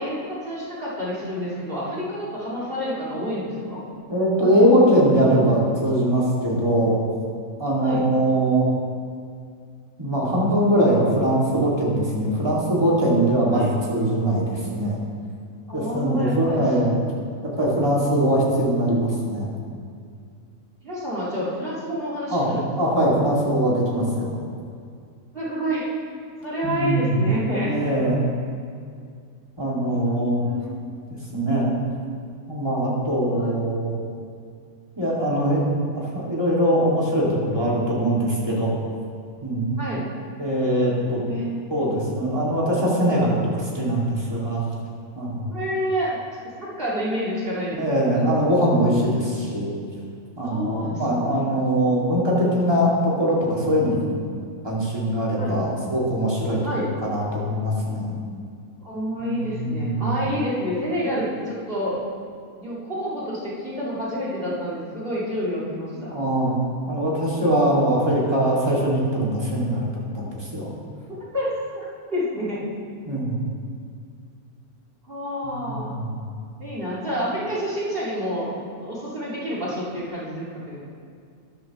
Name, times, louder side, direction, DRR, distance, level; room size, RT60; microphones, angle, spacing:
voice 1, 0.0-3.8 7.8-8.1 13.5-13.7 15.7-17.0 20.8-22.7 25.3-25.9 26.4-27.7 30.4-30.7 33.3-33.5 39.8-40.1 41.2-41.8 45.5-46.2 46.6-48.3 50.4-50.9 51.2-51.6 55.4-55.6 56.6-56.9 58.8-62.0 62.6-66.1 71.1-71.8 72.1-72.6 75.1-75.9 76.6-78.5 78.8-80.8, equal, 40° right, -8 dB, 2.3 m, -28 dB
voice 2, 4.1-7.0 7.6-8.6 10.0-15.0 15.7-17.0 17.4-19.5 22.3-22.5 22.8-24.3 26.6-27.2 27.7-28.2 29.6-30.5 31.3-31.7 32.5-33.9 35.0-35.6 35.9-38.7 39.4-39.8 40.4-41.2 41.7-44.6 45.2-45.5 47.7-49.7 50.4-54.2 54.6-58.1 59.2-60.1 66.1-66.6 66.9-69.9 70.1-70.7 73.1-73.4 75.4-76.2, right 1 dB, 15° right, -5 dB, 2.1 m, -22 dB
13.0 x 11.0 x 3.0 m, 2.3 s
omnidirectional pair, 1.5 m